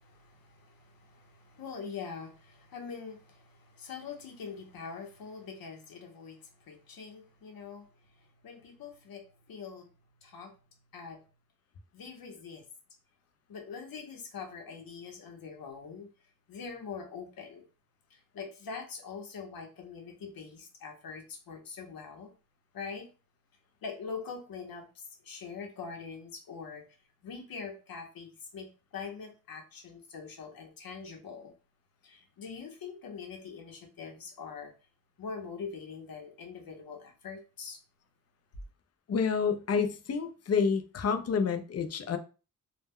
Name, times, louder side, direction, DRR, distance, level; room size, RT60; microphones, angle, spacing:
voice 1, 0.0-9.9 10.2-10.5 10.9-11.2 11.9-12.6 13.5-16.1 16.5-17.7 18.1-22.3 22.7-23.1 23.8-26.8 27.2-28.7 28.9-31.5 32.0-34.7 35.2-37.8, left 5 dB, 90° left, 0.8 m, -43 dB
voice 2, 39.1-42.2, left 6 dB, 45° left, 0.4 m, -29 dB
2.1 x 2.1 x 3.5 m
wide cardioid pair, 90°, 34 cm